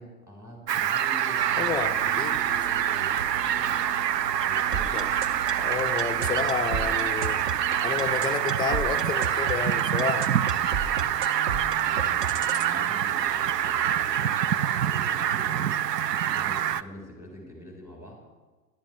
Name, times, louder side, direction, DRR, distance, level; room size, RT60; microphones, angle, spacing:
voice 1, 0.0-3.8 4.2-5.5 11.8-18.2, equal, 5° right, -1 dB, 4.3 m, -46 dB
Fowl, 0.7-16.8, right 10 dB, 80° right, 0.6 m, -26 dB
sound 1, 1.4-9.3, right 7 dB, 60° right, 1.0 m, -41 dB
voice 2, 1.6-2.4 4.9-5.1 5.6-7.4 7.8-10.3, left 7 dB, 10° left, 4 dB, 0.5 m, -30 dB
sound 2, 4.7-12.7, right 6 dB, 35° right, 1.0 m, -32 dB
21.0 x 12.0 x 3.3 m, 1.3 s
hypercardioid pair, 110°, 48 cm